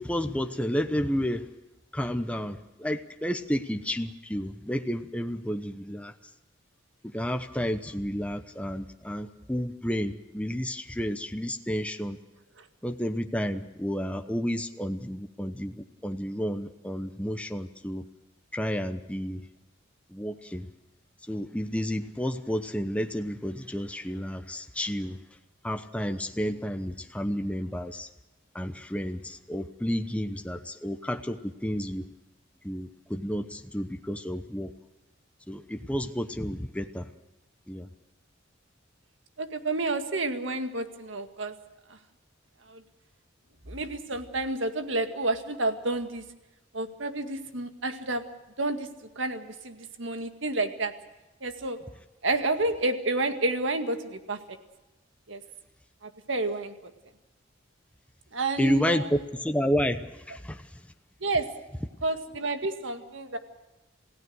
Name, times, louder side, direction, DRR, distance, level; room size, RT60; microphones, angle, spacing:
voice 1, 0.0-1.5 1.9-6.1 7.0-12.2 12.8-18.0 18.5-19.4 20.1-20.7 21.3-25.2 25.6-28.1 28.5-32.0 32.6-34.7 35.5-37.1 37.7-37.9 58.6-60.6, equal, 5° left, 7 dB, 0.9 m, -31 dB
voice 2, 39.4-41.5 42.7-42.8 43.7-46.2 46.7-48.2 48.6-48.9 49.2-50.9 51.4-51.8 52.2-54.4 55.3-55.4 56.3-56.9 58.3-59.2 61.2-61.5 62.0-63.4, right 2 dB, 70° right, 7 dB, 2.0 m, -30 dB
28.0 x 16.5 x 6.4 m, 1.0 s
head